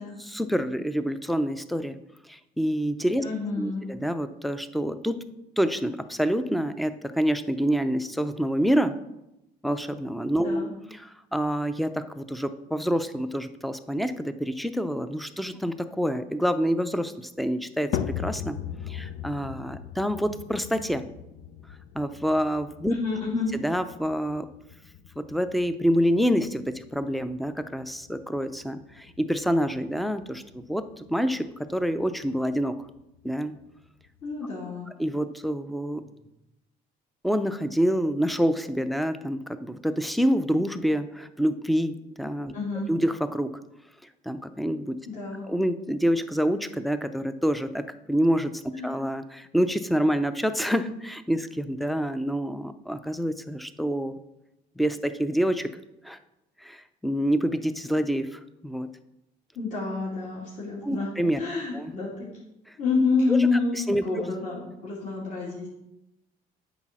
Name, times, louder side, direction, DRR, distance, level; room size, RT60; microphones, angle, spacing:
voice 1, 0.2-2.0 2.3-3.2 3.6-5.2 5.6-9.0 9.6-18.6 18.9-21.1 21.9-22.9 23.5-24.5 25.2-32.7 33.2-33.5 35.0-36.0 37.2-42.5 42.9-43.5 44.3-45.0 45.5-54.2 54.8-55.7 56.0-56.2 56.6-58.9 60.8-61.4 61.7-61.9 63.8-64.0, equal, ahead, 11 dB, 0.5 m, -27 dB
voice 2, 3.2-3.9 10.4-10.7 22.9-23.5 34.2-34.9 36.0-36.1 42.5-42.9 45.0-45.5 48.7-48.9 59.5-61.1 61.4-62.3 62.8-65.7, left 4 dB, 45° left, -7 dB, 2.8 m, -28 dB
sound 1, 17.9-34.4, left 9 dB, 80° left, 0.6 m, -40 dB
8.7 x 4.0 x 6.1 m, 0.89 s
cardioid pair, 110°, 17 cm